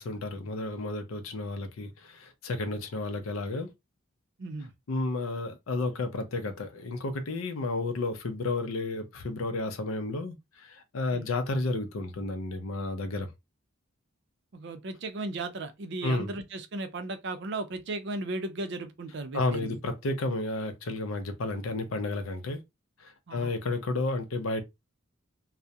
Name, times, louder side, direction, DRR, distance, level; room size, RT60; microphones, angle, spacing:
voice 1, 0.0-3.7 4.9-13.3 16.0-16.3 19.3-22.6 23.0-24.6, left 2 dB, 75° left, 0.5 m, -32 dB
voice 2, 4.4-4.7 11.1-11.3 14.5-19.8 23.3-23.5, right 2 dB, 55° right, 0.5 m, -36 dB
2.3 x 2.0 x 2.6 m
head